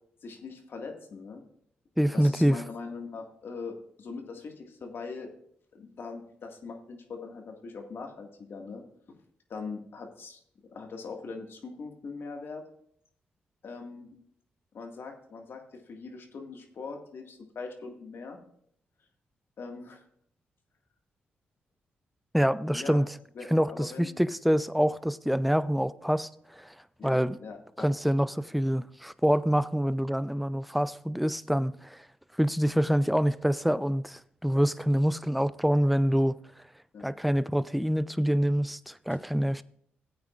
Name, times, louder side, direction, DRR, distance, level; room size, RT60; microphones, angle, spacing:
voice 1, 0.2-1.4 2.1-5.3 5.7-8.8 9.5-12.6 13.6-14.1 14.7-18.4 19.6-20.0 22.7-23.0 23.3-24.2 27.0-27.9 36.9-37.1, left 4 dB, 65° left, 1.9 m, -41 dB
voice 2, 2.0-2.6 22.3-23.0 23.5-26.7 27.0-27.4 27.8-32.0 32.4-36.3 37.0-39.6, equal, ahead, 0.4 m, -26 dB
15.5 x 8.6 x 2.5 m
cardioid pair, 60°, 4 cm